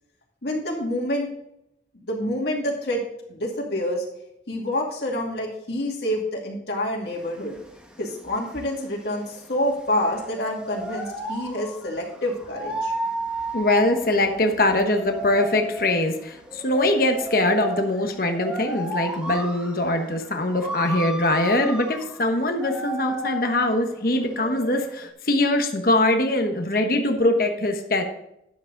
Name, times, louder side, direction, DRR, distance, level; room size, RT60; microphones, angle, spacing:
voice 1, 0.4-1.3 1.9-3.0 3.3-4.0 4.5-7.5 8.0-12.9, left 1 dB, 65° left, -1 dB, 2.4 m, -27 dB
sound 1, 7.1-25.1, right 1 dB, 5° right, 1.1 m, -34 dB
voice 2, 13.5-28.0, left 1 dB, 50° left, 4 dB, 1.2 m, -22 dB
10.5 x 7.7 x 3.9 m, 0.82 s
head